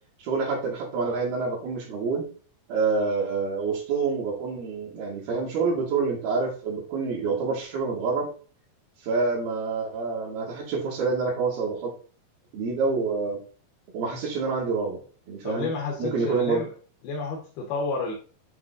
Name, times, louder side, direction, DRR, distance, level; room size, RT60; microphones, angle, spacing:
voice 1, 0.2-2.2 2.7-8.3 9.0-11.9 12.5-13.4 13.9-15.0 15.3-15.7 16.0-16.6, right 4 dB, 75° right, -3 dB, 3.7 m, -27 dB
voice 2, 15.4-16.7 17.0-18.1, left 4 dB, 80° left, -1 dB, 3.0 m, -30 dB
9.3 x 3.4 x 3.7 m, 0.39 s
omnidirectional pair, 4.5 m